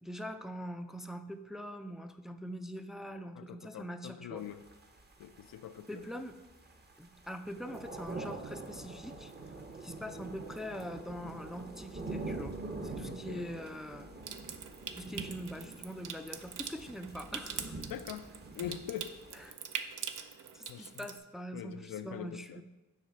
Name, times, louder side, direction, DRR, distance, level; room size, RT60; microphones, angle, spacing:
voice 1, 0.0-4.4 5.9-6.4 7.0-9.3 9.8-12.6 12.8-14.1 14.9-17.8 19.3-19.6 20.5-22.6, equal, ahead, 0.4 m, -43 dB
voice 2, 3.4-4.6 5.2-6.0 13.0-13.5 17.9-18.3 18.5-19.2 20.7-21.1 21.5-22.6, left 10 dB, 75° left, 0.5 m, -43 dB
sound 1, 4.4-19.5, right 3 dB, 30° right, 0.8 m, -45 dB
Water tap faucet / Sink (filling or washing) / Trickle dribble, 14.2-21.2, right 7 dB, 65° right, 0.6 m, -44 dB
7.5 x 3.3 x 5.5 m
cardioid pair, 60°, 34 cm